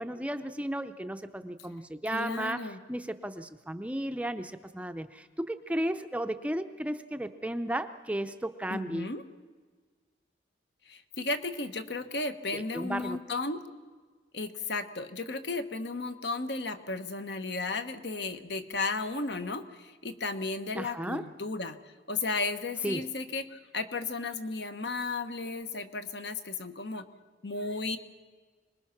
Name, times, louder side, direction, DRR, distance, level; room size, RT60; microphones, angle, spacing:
voice 1, 0.0-9.1 12.5-13.2 20.7-21.3 22.8-23.1, right 1 dB, 5° right, 9 dB, 0.6 m, -34 dB
voice 2, 2.1-2.8 8.7-9.2 10.9-13.6 14.3-21.8 22.1-27.0 27.4-28.0, left 3 dB, 70° left, 9 dB, 1.3 m, -34 dB
25.5 x 20.5 x 5.9 m, 1.5 s
head